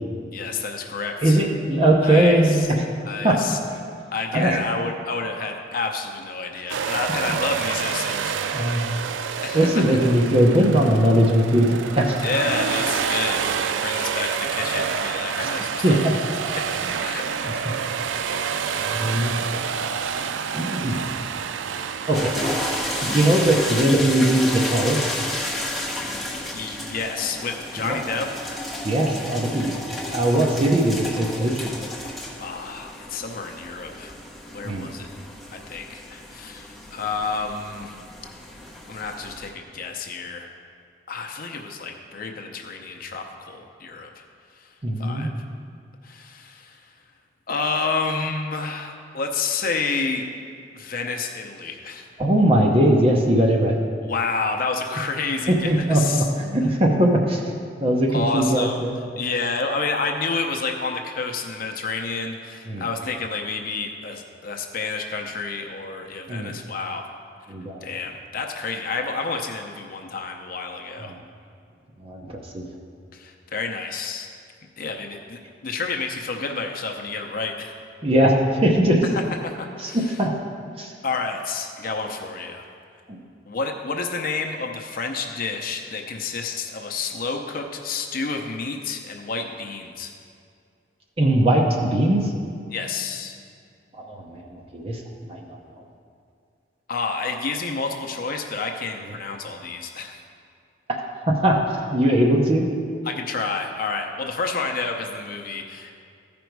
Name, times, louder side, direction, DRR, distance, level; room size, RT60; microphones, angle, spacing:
voice 1, 0.3-1.4 2.0-2.7 3.1-3.6 4.1-8.9 9.4-9.8 12.2-16.0 16.6-17.7 26.5-28.3 32.4-34.1 34.5-35.1 35.5-37.9 38.9-40.5 41.1-44.2 44.6-44.7 45.0-45.3 46.0-46.8 47.5-50.3 50.7-52.1 54.0-56.3 58.1-58.8 59.2-67.1 67.8-71.1 73.1-74.3 74.8-77.7 79.4-80.2 81.0-82.7 83.5-90.1 92.7-93.4 96.9-100.2 103.0-105.9, left 4 dB, 50° left, 3 dB, 0.6 m, -29 dB
voice 2, 1.2-2.9 3.2-3.4 4.3-4.6 8.5-8.9 9.5-12.2 15.4-15.5 15.8-16.2 16.8-16.9 17.5-17.6 18.8-19.6 20.2-20.3 20.5-21.0 22.1-22.4 23.1-25.1 27.8-28.0 28.8-29.7 30.1-31.7 34.6-34.9 44.8-45.3 52.2-53.8 55.5-57.4 57.8-59.0 62.7-62.8 66.3-66.5 67.5-67.8 71.1-71.2 72.0-72.6 78.0-78.3 78.6-79.1 79.8-80.3 80.8-80.9 83.1-83.2 91.2-92.3 93.9-95.8 100.9-101.0 101.3-102.7, right 1 dB, 30° right, 0 dB, 0.8 m, -20 dB
sound 1, 6.7-23.8, right 6 dB, 75° right, 0.4 m, -28 dB
sound 2, 22.1-39.5, left 1 dB, ahead, 1.1 m, -32 dB
14.5 x 5.2 x 4.6 m, 2.3 s
head